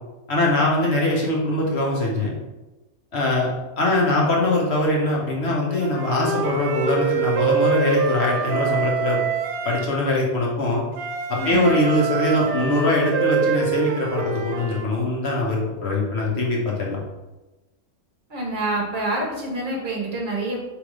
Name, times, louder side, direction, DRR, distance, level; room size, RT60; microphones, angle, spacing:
voice 1, 0.3-2.3 3.1-9.2 9.6-10.8 11.3-17.0, left 2 dB, 50° left, -2 dB, 1.2 m, -22 dB
Wind instrument woodwind instrument, 5.8-9.9 10.9-14.9, right 7 dB, 85° right, 1.1 m, -25 dB
voice 2, 11.4-11.7 18.3-20.7, right 2 dB, 40° right, -2 dB, 1.0 m, -27 dB
3.5 x 3.0 x 4.7 m, 1.1 s
omnidirectional pair, 1.5 m